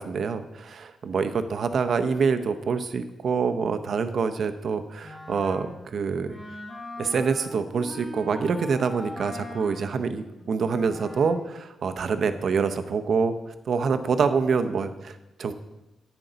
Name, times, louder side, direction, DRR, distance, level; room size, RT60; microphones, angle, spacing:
voice 1, 0.0-6.4 7.0-13.4 13.6-15.5, right 5 dB, 50° right, 9 dB, 0.7 m, -26 dB
Wind instrument woodwind instrument, 5.0-11.6, left 1 dB, 20° left, 3.1 m, -41 dB
10.0 x 8.9 x 3.9 m, 0.99 s
wide cardioid pair, 150°, 0 cm